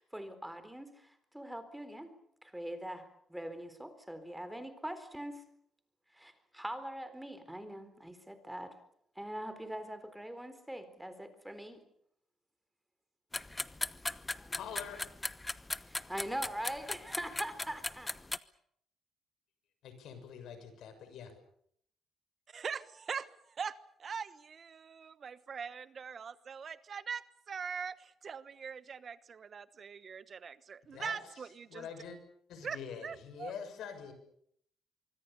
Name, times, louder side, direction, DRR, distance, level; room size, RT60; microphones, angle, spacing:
voice 1, 0.0-2.1 2.4-5.4 6.1-8.7 9.2-11.8 15.8-18.1, right 1 dB, 5° right, 10 dB, 4.1 m, -42 dB
sound 1, 13.3-18.4, left 2 dB, 15° left, 1.1 m, -38 dB
voice 2, 14.5-15.1 19.8-21.3 30.9-31.2 31.7-32.2 32.5-34.1, left 7 dB, 80° left, 9 dB, 6.4 m, -45 dB
voice 3, 22.5-31.9 32.6-33.5, right 6 dB, 45° right, 14 dB, 1.2 m, -42 dB
24.5 x 24.5 x 7.0 m, 0.69 s
cardioid pair, 90°, 0 cm